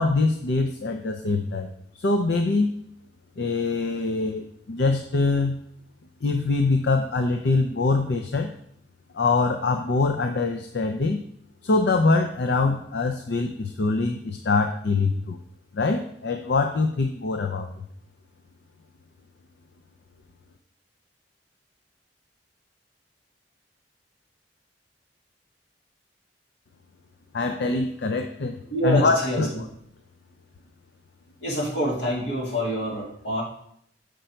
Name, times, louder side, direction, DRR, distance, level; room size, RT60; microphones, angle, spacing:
voice 1, 0.0-1.7 1.9-2.7 3.4-5.6 6.2-8.5 9.1-11.2 11.6-15.4 15.7-17.7 27.3-28.6 28.8-29.5, left 3 dB, 65° left, 5 dB, 0.5 m, -24 dB
voice 2, 28.7-29.6 31.4-33.4, equal, 85° left, -3 dB, 2.6 m, -26 dB
6.8 x 5.1 x 4.4 m, 0.70 s
head